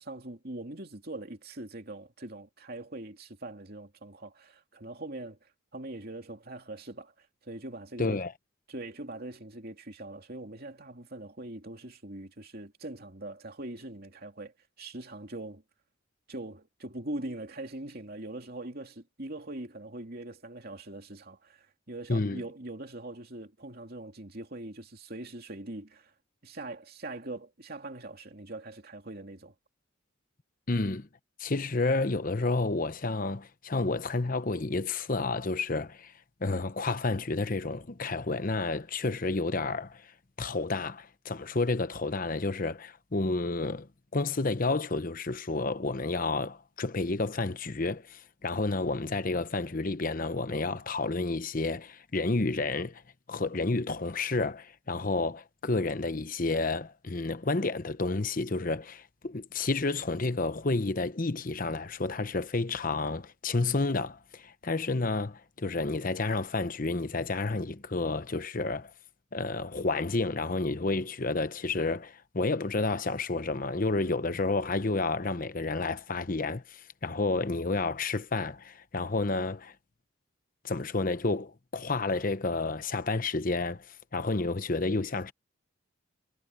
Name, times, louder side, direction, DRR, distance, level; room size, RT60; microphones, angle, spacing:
voice 1, 0.0-8.2 8.7-15.6 16.3-26.1 26.4-29.5, right 2 dB, 45° right, 2.8 m, -42 dB
voice 2, 8.0-8.3 22.1-22.4 30.7-31.1 31.4-36.1 36.4-40.1 40.4-43.9 44.1-53.0 53.3-68.9 69.3-79.7 80.6-85.3, left 3 dB, 40° left, 0.9 m, -30 dB
head